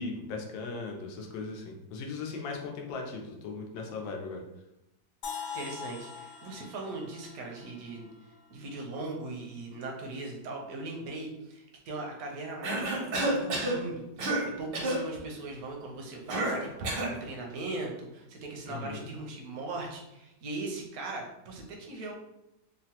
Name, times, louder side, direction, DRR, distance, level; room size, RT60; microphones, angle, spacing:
voice 1, 0.0-4.4 18.7-19.1, left 4 dB, 90° left, 1 dB, 1.4 m, -38 dB
sound 1, 5.2-9.1, left 6 dB, 75° left, 1.0 m, -43 dB
voice 2, 5.5-8.1 8.5-22.1, right 2 dB, 65° right, 0 dB, 0.9 m, -39 dB
Cough, 12.6-13.8 14.2-14.5 14.7-15.0 16.3-17.2, right 1 dB, 80° right, 1.5 m, -29 dB
3.8 x 2.0 x 2.8 m, 0.88 s
omnidirectional pair, 2.1 m